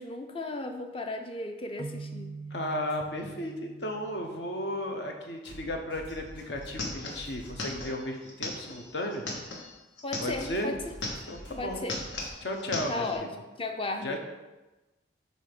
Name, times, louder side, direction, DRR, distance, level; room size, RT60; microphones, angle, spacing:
voice 1, 0.0-2.3 10.0-10.8 11.6-12.0 12.9-13.3 13.6-14.2, left 2 dB, 30° left, 5 dB, 0.6 m, -35 dB
sound 1, 1.8-5.3, right 4 dB, 25° right, 0.3 m, -44 dB
voice 2, 2.5-9.2 10.2-10.7 11.3-11.9 12.4-13.3 14.0-14.2, left 1 dB, 65° left, 3 dB, 1.0 m, -34 dB
sound 2, 2.9-3.0 5.4-7.8 10.2-12.3, equal, 50° left, 2.5 m, -46 dB
sound 3, 6.1-6.2 6.4-10.6 10.9-11.5 11.8-13.2, left 2 dB, 90° left, 1.3 m, -37 dB
8.1 x 2.8 x 6.0 m, 1.1 s
head